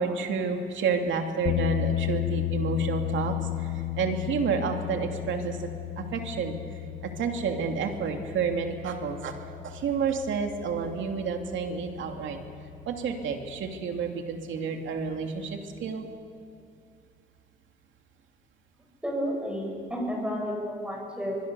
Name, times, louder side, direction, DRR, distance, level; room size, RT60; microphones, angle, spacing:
voice 1, 0.0-5.7 6.0-9.3 9.6-12.4 12.9-16.1, right 5 dB, 75° right, 4 dB, 2.7 m, -30 dB
sound 1, 1.4-13.8, left 16 dB, 80° left, 0.7 m, -34 dB
voice 2, 19.0-21.4, equal, 5° right, -1 dB, 7.5 m, -31 dB
25.5 x 21.5 x 7.0 m, 2.5 s
cardioid pair, 90°, 20 cm